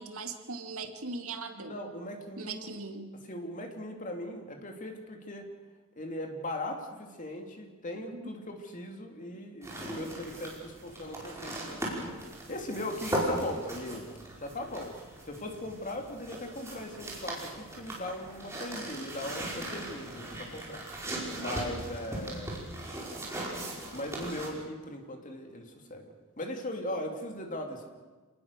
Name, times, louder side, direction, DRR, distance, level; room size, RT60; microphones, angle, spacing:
voice 1, 0.0-1.8 2.4-3.1 7.9-8.3, right 3 dB, 75° right, 6 dB, 2.1 m, -40 dB
voice 2, 1.6-2.8 3.3-5.5 6.0-12.2 12.5-14.1 14.4-14.9 15.2-22.7 23.9-27.9, left 1 dB, 35° left, 3 dB, 2.7 m, -39 dB
sound 1, 9.6-24.5, right 1 dB, 15° right, 5.1 m, -38 dB
27.0 x 19.5 x 6.7 m, 1.3 s
head